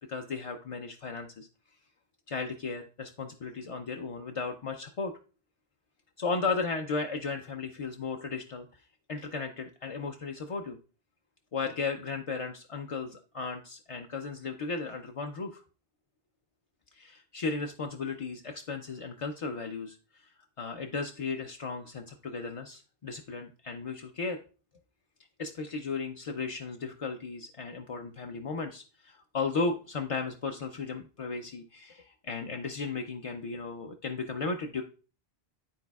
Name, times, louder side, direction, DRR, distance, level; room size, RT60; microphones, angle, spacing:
voice 1, 0.1-1.5 2.3-5.1 6.2-8.8 9.1-10.8 11.5-15.6 16.9-20.3 20.6-24.4 25.4-34.8, left 4 dB, 45° left, 3 dB, 0.4 m, -35 dB
12.0 x 4.0 x 2.3 m, 0.36 s
omnidirectional pair, 1.0 m